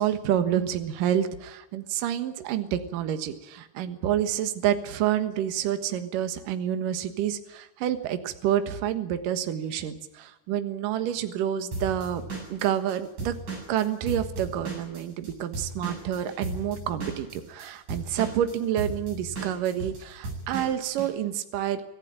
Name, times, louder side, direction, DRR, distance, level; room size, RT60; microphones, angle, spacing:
voice 1, 0.0-12.2 12.5-13.3 13.7-21.8, right 10 dB, 65° right, 9 dB, 2.8 m, -28 dB
Drum kit / Drum, 11.7-15.3 15.5-21.1, right 2 dB, 50° right, 9.5 m, -35 dB
25.5 x 15.0 x 8.8 m, 0.95 s
omnidirectional pair, 4.5 m